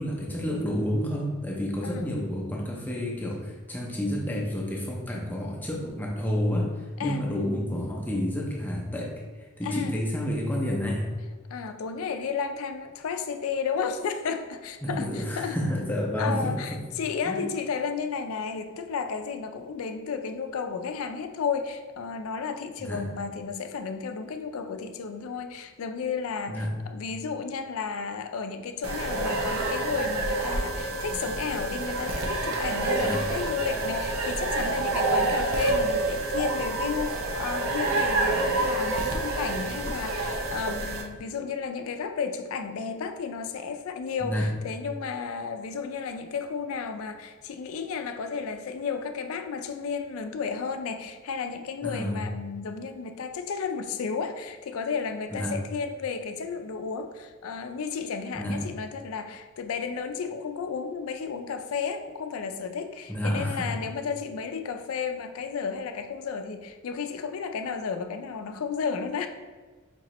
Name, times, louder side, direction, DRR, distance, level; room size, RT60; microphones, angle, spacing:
voice 1, 0.0-6.7 7.0-9.2 9.6-11.0 14.8-16.8 17.3-17.4 22.8-23.0 26.5-26.7 33.0-33.2 44.2-44.5 51.8-52.2 55.3-55.5 58.3-58.6 63.1-63.7, equal, 10° left, -2 dB, 0.5 m, -29 dB
voice 2, 9.6-10.0 11.5-15.6 16.2-69.3, left 5 dB, 70° left, 7 dB, 0.4 m, -33 dB
sound 1, 28.8-41.0, right 2 dB, 80° right, 0.6 m, -28 dB
5.0 x 2.9 x 2.9 m, 1.4 s
head